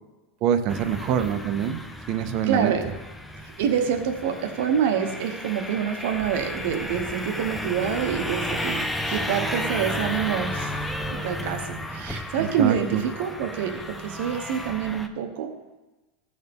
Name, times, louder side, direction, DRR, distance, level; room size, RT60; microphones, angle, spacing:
voice 1, 0.4-1.8 2.1-2.7 12.3-13.0, right 9 dB, 45° right, 10 dB, 0.6 m, -25 dB
sound 1, 0.7-15.1, left 1 dB, 5° left, 0.5 m, -33 dB
voice 2, 2.4-2.8 3.4-10.7 11.1-15.7, right 8 dB, 70° right, 6 dB, 0.9 m, -27 dB
15.0 x 6.4 x 3.5 m, 1.1 s
supercardioid pair, 160°, 0 cm